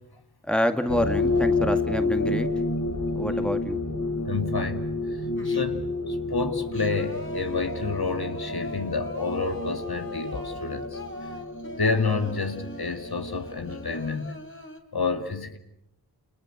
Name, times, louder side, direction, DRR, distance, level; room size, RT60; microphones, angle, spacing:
voice 1, 0.5-2.5 3.2-3.8, equal, ahead, 2.0 m, -27 dB
sound 1, 0.9-14.0, left 2 dB, 50° left, 2.7 m, -30 dB
voice 2, 4.2-4.9 5.4-11.0 11.8-14.4 14.9-15.6, left 4 dB, 65° left, 2.3 m, -29 dB
Singing, 5.4-5.9 6.4-14.8, left 1 dB, 30° left, 3.7 m, -43 dB
29.5 x 29.5 x 6.5 m
wide cardioid pair, 55°, 40 cm